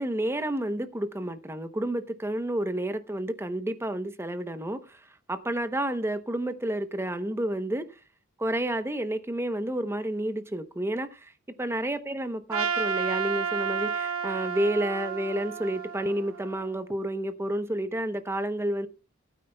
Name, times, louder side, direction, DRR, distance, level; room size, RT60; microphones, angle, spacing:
voice 1, 0.0-5.0 5.3-7.9 8.4-11.3 11.6-18.9, right 1 dB, 10° right, 0.8 m, -30 dB
Trumpet, 12.5-16.8, right 6 dB, 85° right, 1.1 m, -31 dB
19.0 x 9.1 x 2.2 m
head